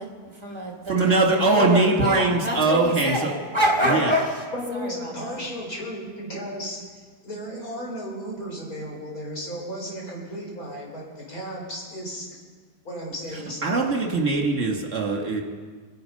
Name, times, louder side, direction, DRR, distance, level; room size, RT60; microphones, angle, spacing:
voice 1, 0.0-4.4 4.7-5.4, equal, 15° right, -1 dB, 3.0 m, -27 dB
voice 2, 0.9-3.3 3.9-4.1 13.6-15.4, right 3 dB, 45° right, 0 dB, 2.5 m, -21 dB
voice 3, 4.5-6.8 7.2-12.3 12.8-13.9, equal, 60° left, -2 dB, 4.8 m, -34 dB
26.5 x 9.6 x 5.5 m, 1.5 s
omnidirectional pair, 1.8 m